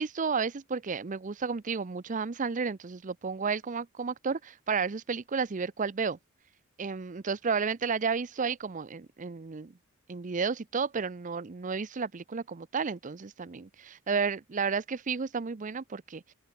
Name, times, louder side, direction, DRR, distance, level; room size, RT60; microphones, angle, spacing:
voice 1, 0.0-6.2 6.8-9.7 10.1-16.2, right 5 dB, 35° right, 0.5 m, -32 dB
head